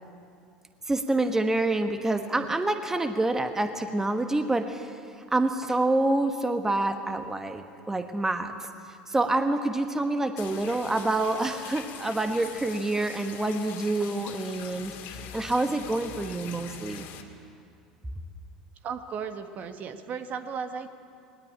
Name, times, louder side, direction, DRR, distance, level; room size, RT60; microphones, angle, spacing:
voice 1, 0.9-5.0 5.3-17.1, right 2 dB, 10° right, 7 dB, 1.2 m, -27 dB
sound 1, 10.4-17.2, left 8 dB, 55° left, 2.3 m, -43 dB
voice 2, 18.8-20.9, right 6 dB, 40° right, 8 dB, 1.5 m, -35 dB
20.5 x 19.0 x 8.8 m, 2.4 s
figure-of-eight pair, 70°, 4 cm